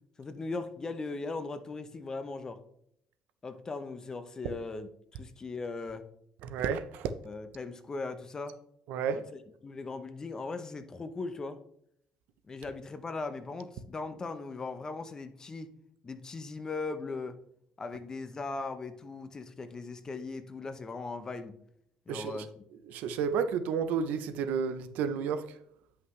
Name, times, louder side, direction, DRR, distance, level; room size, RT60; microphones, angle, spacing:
voice 1, 0.2-2.6 3.4-6.1 7.2-8.6 9.1-11.6 12.5-15.7 16.0-17.4 17.8-21.6 22.1-22.5, left 3 dB, 25° left, 0.7 m, -39 dB
voice 2, 6.4-7.1 8.9-9.2 22.1-22.4 22.9-25.4, right 6 dB, 80° right, 0.6 m, -31 dB
9.7 x 5.8 x 3.2 m
cardioid pair, 130°, 3 cm